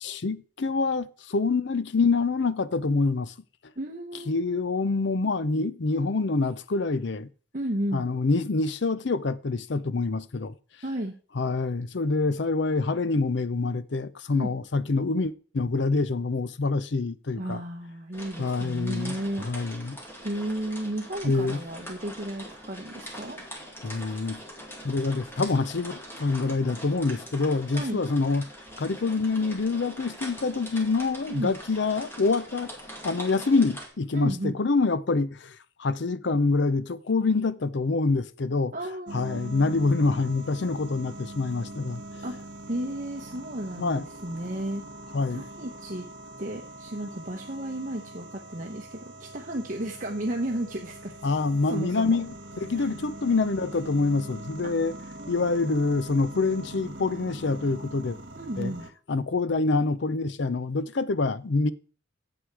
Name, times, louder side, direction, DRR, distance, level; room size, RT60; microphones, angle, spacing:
voice 1, 0.0-3.3 4.3-7.3 7.9-10.6 11.4-17.6 18.4-20.0 21.2-21.6 23.8-24.4 24.8-28.5 28.8-32.7 33.0-38.7 39.1-42.0 43.8-44.0 45.1-45.4 51.2-52.3 52.6-54.9 55.3-58.2 58.6-58.7 59.1-61.7, left 3 dB, 60° left, 0.6 m, -26 dB
voice 2, 3.8-4.6 7.5-8.1 10.8-11.1 14.3-14.5 17.4-19.5 20.2-23.4 27.7-28.0 31.3-31.5 34.1-34.6 38.7-39.4 42.2-42.3 42.7-44.8 45.3-46.1 46.4-51.1 51.7-52.2 52.7-52.9 54.6-54.7 55.2-55.6 58.3-58.9, right 1 dB, 40° right, 1.1 m, -33 dB
sound 1, 18.1-33.9, equal, 10° left, 2.2 m, -43 dB
sound 2, 39.1-58.9, right 1 dB, 65° right, 1.7 m, -43 dB
11.5 x 8.1 x 4.7 m
head